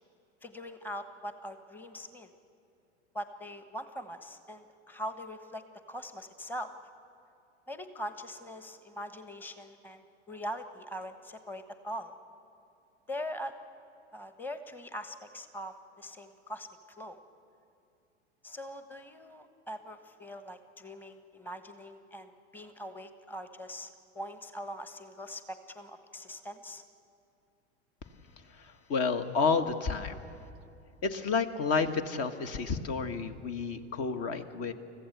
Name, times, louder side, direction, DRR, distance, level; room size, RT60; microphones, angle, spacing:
voice 1, 0.4-2.3 3.1-6.7 7.7-12.1 13.1-13.5 14.1-16.7 17.0-17.2 18.4-26.8, equal, 5° left, 9 dB, 1.3 m, -42 dB
voice 2, 28.5-30.2 31.0-34.7, left 4 dB, 40° left, 7 dB, 1.6 m, -30 dB
29.0 x 15.5 x 8.0 m, 2.6 s
figure-of-eight pair, 85°, 36 cm